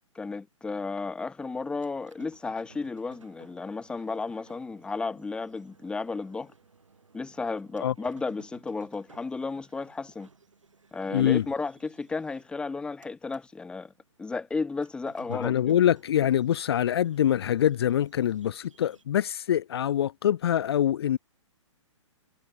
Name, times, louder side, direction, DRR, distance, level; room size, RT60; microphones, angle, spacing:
voice 1, 0.1-6.5 7.1-10.3 10.9-13.9 14.2-15.7, left 4 dB, 5° left, 0.9 m, -33 dB
sound 1, 1.6-13.5 13.8-19.0, right 4 dB, 75° right, 6.2 m, -58 dB
voice 2, 11.1-11.4 15.3-21.2, left 10 dB, 50° left, 0.6 m, -24 dB
figure-of-eight pair, 120°, 16 cm